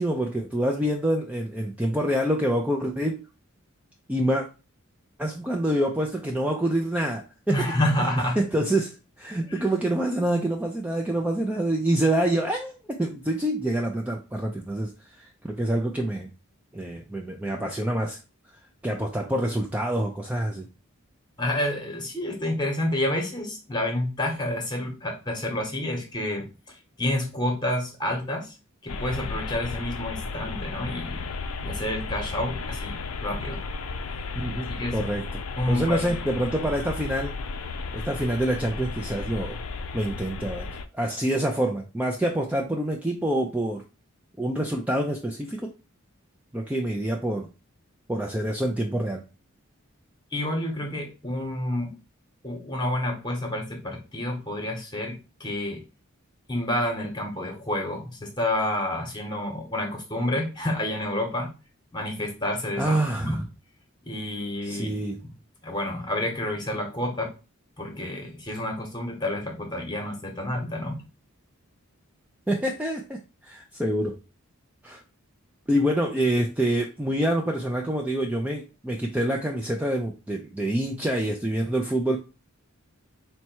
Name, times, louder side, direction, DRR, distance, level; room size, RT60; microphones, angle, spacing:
voice 1, 0.0-3.2 4.1-4.5 5.2-7.6 8.0-16.3 16.7-18.2 18.8-20.7 34.4-34.7 34.9-35.4 35.7-37.4 37.9-39.6 39.9-43.8 44.4-45.7 46.5-47.5 48.1-49.2 62.8-63.5 64.6-65.2 72.5-74.2 74.8-75.0 75.7-82.2, right 1 dB, 5° right, 1 dB, 0.3 m, -26 dB
voice 2, 7.5-8.4 9.5-9.6 21.4-28.5 28.8-31.2 31.6-33.6 34.7-35.0 35.6-36.1 50.3-51.9 52.4-55.8 56.5-61.5 61.9-63.4 64.1-65.0 65.6-67.3 67.8-71.0, left 1 dB, 20° left, 2 dB, 1.0 m, -29 dB
sound 1, 28.9-40.8, left 4 dB, 85° left, 0.5 m, -34 dB
4.3 x 2.2 x 4.3 m, 0.31 s
head